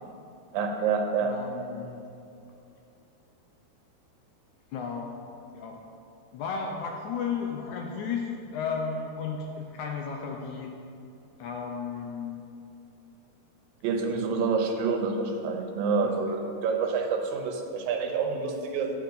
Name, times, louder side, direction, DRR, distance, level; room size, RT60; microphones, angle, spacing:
voice 1, 0.5-1.3 9.4-9.5 13.8-18.9, right 5 dB, 85° right, 3 dB, 2.6 m, -28 dB
voice 2, 1.2-2.0 4.7-5.2 5.5-5.8 6.3-10.7 11.4-12.4 16.0-16.2, left 5 dB, 80° left, 1 dB, 1.8 m, -34 dB
10.5 x 8.2 x 3.9 m, 2.7 s
omnidirectional pair, 3.9 m